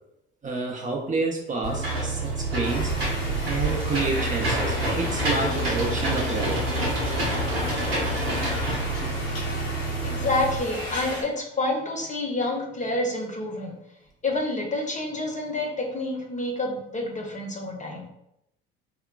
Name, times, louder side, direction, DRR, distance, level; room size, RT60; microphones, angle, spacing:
voice 1, 0.4-2.9 3.4-6.6, right 3 dB, 25° right, 0 dB, 0.6 m, -29 dB
Engine / Mechanisms, 1.6-10.6, right 2 dB, 90° right, 0.9 m, -27 dB
sound 1, 2.6-11.2, left 1 dB, 85° left, 0.9 m, -35 dB
voice 2, 10.0-13.7 14.2-18.1, left 2 dB, 25° left, 1 dB, 0.8 m, -28 dB
3.6 x 2.1 x 2.3 m, 0.81 s
hypercardioid pair, 65°, 29 cm